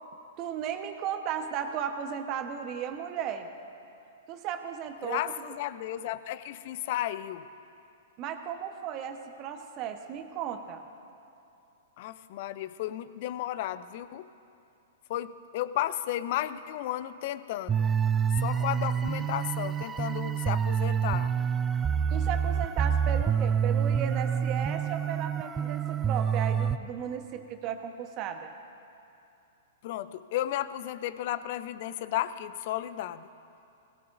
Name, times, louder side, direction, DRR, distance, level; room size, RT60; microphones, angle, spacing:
voice 1, 0.4-3.5 4.3-5.5 8.2-10.8 22.1-28.5, right 8 dB, 40° right, 6 dB, 1.0 m, -35 dB
voice 2, 5.0-7.5 12.0-14.3 15.1-17.9 18.4-21.3 29.8-33.3, left 13 dB, 55° left, 14 dB, 0.5 m, -33 dB
sound 1, 17.7-26.8, right 7 dB, 20° right, 0.4 m, -27 dB
18.0 x 16.5 x 2.6 m, 2.7 s
hypercardioid pair, 120°, 0 cm